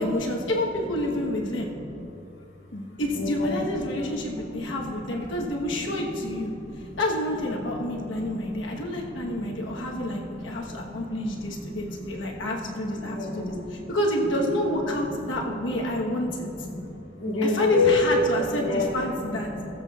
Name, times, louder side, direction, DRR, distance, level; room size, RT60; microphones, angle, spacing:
voice 1, 0.0-1.7 2.7-6.5 7.0-16.5 17.4-19.5, left 1 dB, 90° left, -1 dB, 1.2 m, -28 dB
voice 2, 3.2-3.6 4.0-4.1 4.5-4.6 6.5-7.0 8.2-11.0 11.6-11.8 12.1-12.5 13.0-13.9 16.7-18.0 18.6-19.0 19.5-19.7, left 4 dB, 70° left, -3 dB, 1.9 m, -30 dB
19.5 x 7.6 x 2.4 m, 2.8 s
head